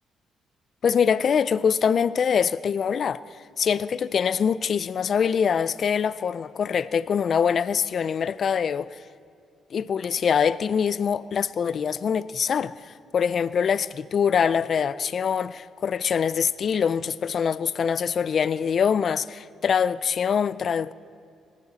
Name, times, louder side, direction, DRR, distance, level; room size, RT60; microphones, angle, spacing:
voice 1, 0.8-3.2 3.6-9.0 9.7-20.9, left 7 dB, 55° left, 0.4 m, -24 dB
19.0 x 15.5 x 4.1 m
cardioid pair, 90°, 0 cm